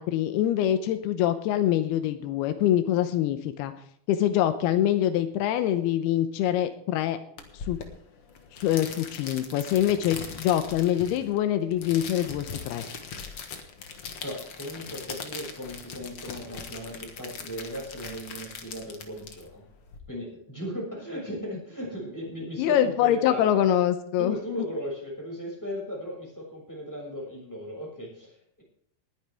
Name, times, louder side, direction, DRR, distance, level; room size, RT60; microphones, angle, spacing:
voice 1, 0.0-3.7 4.1-7.2 7.7-7.8 8.5-12.8 22.6-24.4, left 11 dB, 85° left, 8 dB, 2.9 m, -24 dB
sound 1, 7.4-20.0, left 6 dB, 55° left, 1.7 m, -41 dB
voice 2, 14.2-19.6 20.1-23.6 24.2-28.6, equal, 5° left, -3 dB, 6.1 m, -37 dB
20.0 x 10.5 x 3.5 m, 0.65 s
omnidirectional pair, 4.4 m